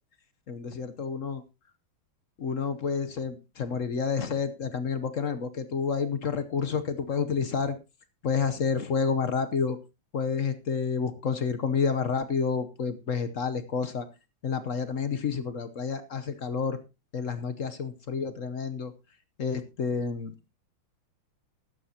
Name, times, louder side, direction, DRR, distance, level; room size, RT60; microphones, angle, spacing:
voice 1, 0.5-1.4 2.4-7.8 8.2-9.8 10.1-14.1 14.4-16.8 17.1-18.9 19.4-20.5, left 6 dB, 50° left, 11 dB, 1.0 m, -29 dB
15.5 x 12.5 x 2.9 m, 0.27 s
omnidirectional pair, 2.3 m